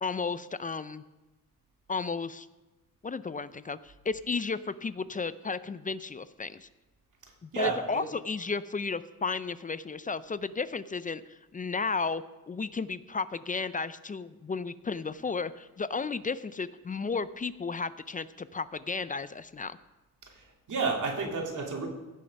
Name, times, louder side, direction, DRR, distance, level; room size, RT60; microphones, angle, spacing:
voice 1, 0.0-1.0 1.9-2.5 3.0-6.7 7.4-19.8, left 4 dB, 25° left, 15 dB, 0.4 m, -33 dB
voice 2, 7.5-8.0 20.2-21.9, right 4 dB, 60° right, 0 dB, 2.6 m, -31 dB
16.5 x 6.4 x 5.3 m, 1.1 s
cardioid pair, 95°, 34 cm